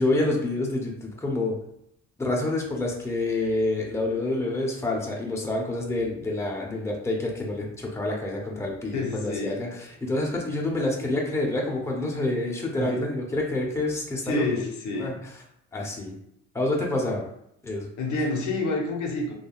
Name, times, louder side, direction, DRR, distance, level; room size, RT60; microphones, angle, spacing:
voice 1, 0.0-1.6 2.2-9.7 10.0-14.4 15.0-15.1 15.7-16.1 16.5-17.2 17.6-17.9, left 2 dB, 10° left, -2 dB, 0.7 m, -27 dB
voice 2, 8.9-9.6 12.8-13.0 14.2-15.2 18.0-19.3, left 2 dB, 75° left, 1 dB, 0.7 m, -28 dB
3.5 x 2.2 x 2.3 m, 0.75 s
cardioid pair, 90°, 30 cm